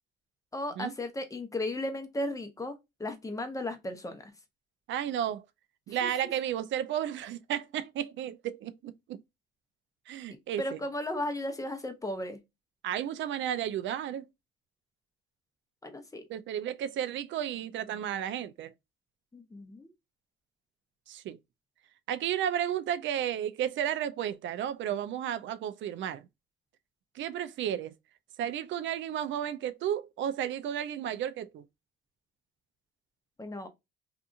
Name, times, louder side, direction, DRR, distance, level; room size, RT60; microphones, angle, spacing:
voice 1, 0.5-4.3 10.6-12.4 15.8-16.2 19.3-19.9 33.4-33.7, left 1 dB, 15° left, 0.7 m, -35 dB
voice 2, 4.9-5.5 5.9-9.2 10.1-10.8 12.8-14.3 16.3-18.7 21.1-21.4 22.1-26.3 27.1-27.9 28.4-31.7, right 10 dB, 70° right, 0.4 m, -33 dB
2.7 x 2.4 x 2.4 m
cardioid pair, 90°, 20 cm